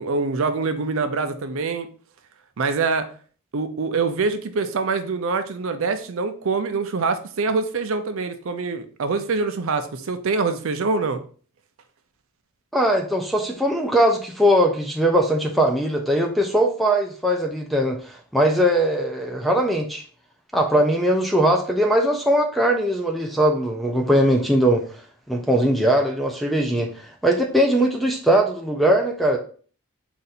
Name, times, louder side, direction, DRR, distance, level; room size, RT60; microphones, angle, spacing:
voice 1, 0.0-1.9 2.6-3.1 3.5-11.2, right 4 dB, 65° right, 9 dB, 0.5 m, -24 dB
voice 2, 12.7-20.0 20.5-24.8 25.3-29.4, right 1 dB, ahead, 2 dB, 0.4 m, -20 dB
3.9 x 2.6 x 4.1 m, 0.42 s
head